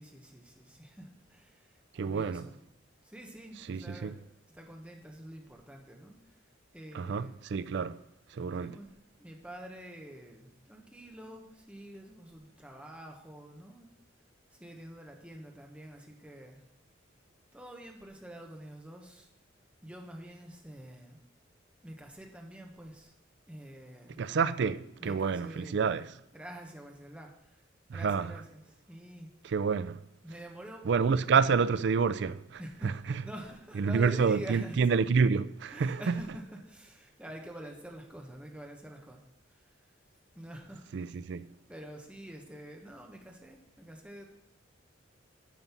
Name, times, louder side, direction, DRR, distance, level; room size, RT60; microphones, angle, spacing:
voice 1, 0.0-2.6 3.0-4.2 4.5-6.4 6.7-7.4 8.6-8.9 9.2-13.9 14.5-16.7 17.5-19.3 19.8-21.2 21.8-23.1 23.5-24.2 25.0-27.7 27.9-29.3 30.2-31.5 32.6-34.8 35.7-39.2 39.5-39.9 40.3-41.2 41.7-44.3, right 1 dB, 5° right, 1.2 m, -47 dB
voice 2, 1.9-2.5 3.7-4.1 6.9-8.0 8.3-8.8 24.2-26.1 27.9-28.3 29.4-30.0 30.9-33.2 33.8-36.1 40.9-41.5, right 5 dB, 60° right, 0.4 m, -28 dB
9.2 x 5.4 x 6.0 m
head